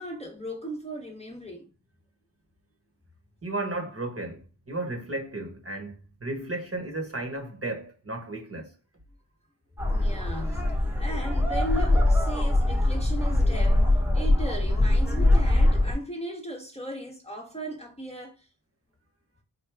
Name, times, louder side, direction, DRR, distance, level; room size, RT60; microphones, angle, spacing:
voice 1, 0.0-1.7 9.9-10.6 11.0-13.9 14.1-18.5, right 1 dB, 15° left, 0.9 m, -37 dB
voice 2, 3.4-8.7, right 2 dB, 35° right, 1.1 m, -34 dB
sound 1, 9.8-15.9, left 1 dB, 5° right, 1.1 m, -22 dB
4.7 x 2.2 x 3.4 m
wide cardioid pair, 55°, 42 cm